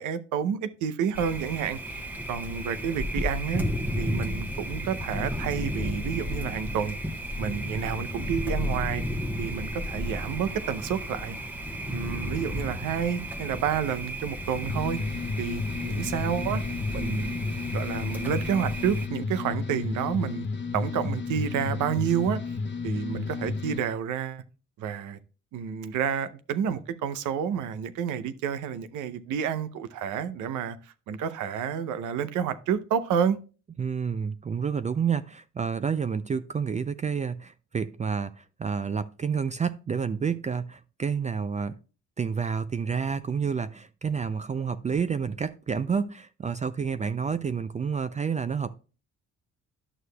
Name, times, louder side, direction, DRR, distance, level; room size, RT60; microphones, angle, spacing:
voice 1, 0.0-3.6 4.0-7.0 7.4-9.0 9.4-11.4 11.9-15.0 15.4-16.6 16.9-17.4 17.7-20.5 20.7-22.4 22.8-24.4 24.8-25.2 25.5-33.4, right 8 dB, 90° right, 0.7 m, -29 dB
Thunder, 1.1-19.1, equal, 5° right, 1.0 m, -33 dB
sound 1, 14.7-23.8, left 4 dB, 40° left, 0.8 m, -32 dB
voice 2, 33.8-41.8 42.2-48.8, right 6 dB, 25° right, 0.3 m, -29 dB
11.0 x 6.4 x 2.2 m
cardioid pair, 90°, 30 cm